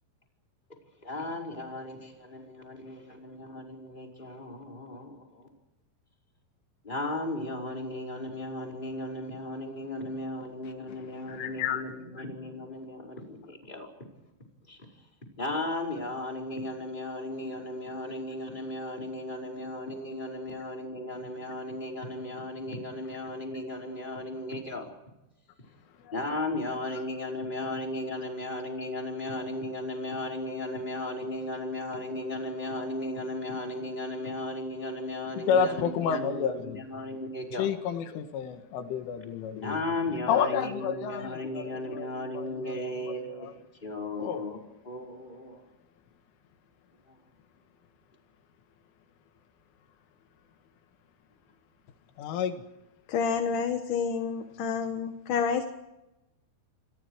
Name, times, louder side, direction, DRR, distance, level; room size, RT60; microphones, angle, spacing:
voice 1, 1.0-5.4 6.8-13.9 14.7-14.8 15.4-24.9 26.1-37.7 39.6-44.6 44.8-45.6, left 1 dB, 10° left, 4.8 m, -36 dB
voice 2, 10.9-12.1 26.0-26.1 26.9-27.0 35.4-36.8 37.6-39.8 40.3-43.5 44.2-44.4 52.2-52.6, left 7 dB, 85° left, 4.4 m, -31 dB
voice 3, 53.1-55.7, left 6 dB, 60° left, 2.3 m, -29 dB
29.0 x 26.5 x 4.9 m
omnidirectional pair, 5.5 m